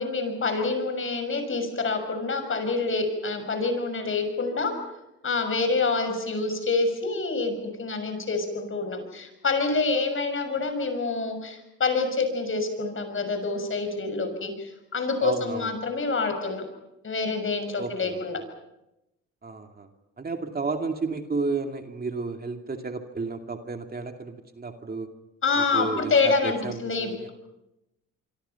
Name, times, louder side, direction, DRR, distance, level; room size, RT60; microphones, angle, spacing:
voice 1, 0.0-4.7 5.2-16.7 17.0-18.4 25.4-27.3, left 3 dB, 45° left, 7 dB, 6.5 m, -27 dB
voice 2, 15.2-15.8 17.8-18.2 19.4-19.9 20.2-25.1 25.6-27.3, right 3 dB, 30° right, 5 dB, 2.4 m, -32 dB
25.5 x 25.5 x 5.9 m, 0.90 s
cardioid pair, 90°, 30 cm